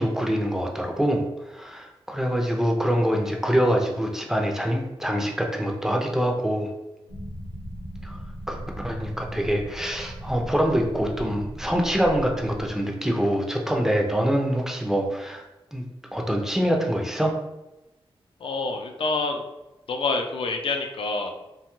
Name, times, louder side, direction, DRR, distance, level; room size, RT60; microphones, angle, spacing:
voice 1, 0.0-6.7 8.0-8.2 8.5-8.6 8.8-15.4 15.7-15.8 16.1-17.4, equal, 5° right, 1 dB, 0.5 m, -25 dB
sound 1, 7.1-12.7, right 1 dB, 75° right, 0.8 m, -38 dB
voice 2, 18.4-19.4 19.9-21.3, left 3 dB, 65° left, 4 dB, 0.4 m, -27 dB
2.8 x 2.2 x 2.9 m, 0.98 s
wide cardioid pair, 105°, 10 cm